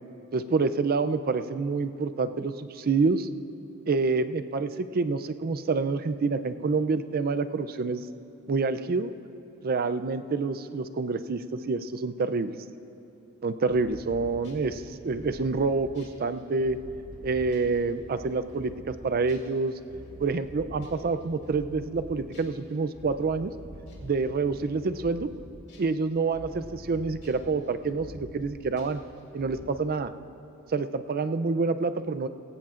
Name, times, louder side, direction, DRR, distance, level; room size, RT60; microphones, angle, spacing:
voice 1, 0.3-3.3 3.9-8.0 8.5-9.1 9.6-12.5 13.4-16.8 17.2-19.7 20.2-23.5 24.0-25.3 25.8-29.0 29.3-30.1 30.7-32.3, right 4 dB, 45° right, 11 dB, 0.4 m, -27 dB
sound 1, 13.7-22.5 22.9-29.7, equal, 55° left, 2.6 m, -47 dB
20.0 x 16.5 x 2.5 m, 2.8 s
head